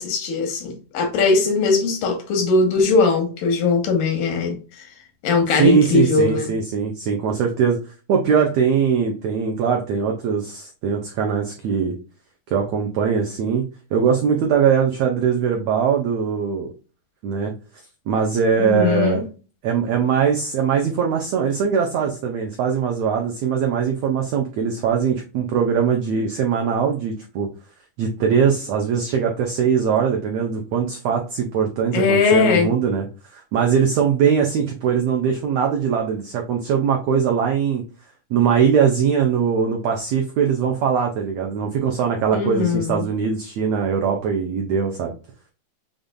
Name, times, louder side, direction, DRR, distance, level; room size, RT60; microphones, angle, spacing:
voice 1, 0.0-4.5 5.2-6.5 18.6-19.2 31.9-32.7 42.3-43.0, left 4 dB, 90° left, 2.9 m, -19 dB
voice 2, 5.5-7.8 8.1-11.9 12.5-13.6 13.9-16.7 17.2-17.5 18.1-19.2 19.6-27.5 28.0-33.1 33.3-37.8 38.3-45.1, right 7 dB, 90° right, 1.4 m, -21 dB
6.7 x 2.5 x 2.3 m
omnidirectional pair, 3.8 m